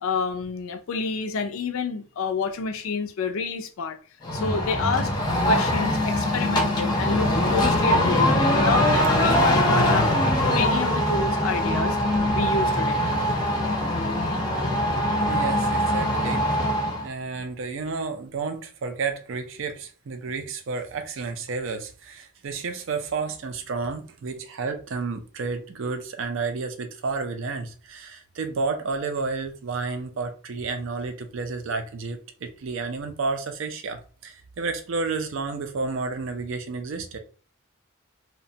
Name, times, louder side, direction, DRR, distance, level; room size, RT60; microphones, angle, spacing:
voice 1, 0.0-4.0 4.3-5.1 5.5-10.1 10.4-12.0 12.3-13.0, left 4 dB, 80° left, 0.4 m, -28 dB
sound 1, 4.2-17.1, left 1 dB, 20° left, 0.5 m, -22 dB
voice 2, 15.3-16.4 17.0-37.2, right 4 dB, 70° right, 0.4 m, -31 dB
2.8 x 2.1 x 2.6 m
head